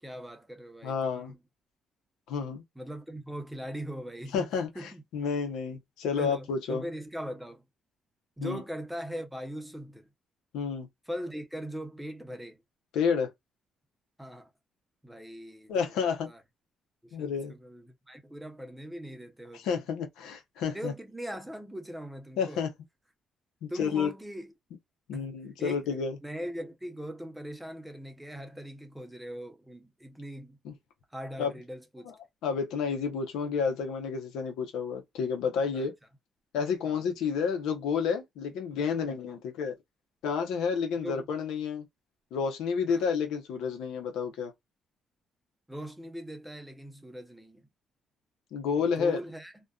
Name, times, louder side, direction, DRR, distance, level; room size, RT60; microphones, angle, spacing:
voice 1, 0.0-1.4 2.8-4.5 4.7-5.0 6.2-7.6 8.4-10.1 11.1-12.6 14.2-14.5 15.0-15.9 16.3-16.4 17.0-19.8 20.7-22.6 23.7-24.5 25.1-25.3 25.6-30.6 31.1-32.1 35.7-35.9 36.9-37.0 39.3-39.4 41.0-41.3 42.9-43.1 45.7-47.7 48.8-49.5, equal, 5° right, 0.7 m, -40 dB
voice 2, 0.8-1.3 2.3-2.6 4.3-6.8 8.4-8.6 10.5-10.9 12.9-13.3 15.7-16.3 17.1-17.5 19.5-20.9 22.4-22.7 23.6-24.1 25.1-26.2 30.6-30.7 31.4-31.5 32.4-35.9 36.5-39.7 40.2-41.8 42.3-44.5 48.5-49.2, left 6 dB, 90° left, 0.7 m, -30 dB
2.5 x 2.2 x 2.3 m
cardioid pair, 90°, 0 cm